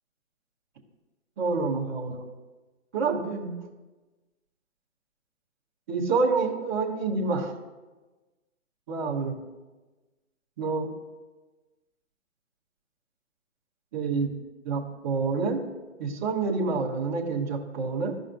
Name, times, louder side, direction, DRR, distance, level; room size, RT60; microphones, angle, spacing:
voice 1, 1.4-2.2 2.9-3.6 5.9-7.5 8.9-9.4 10.6-10.9 13.9-14.3 14.6-15.7 16.0-18.1, right 4 dB, 15° right, -7 dB, 0.8 m, -27 dB
15.0 x 5.5 x 2.5 m, 1.2 s
hypercardioid pair, 170°, 39 cm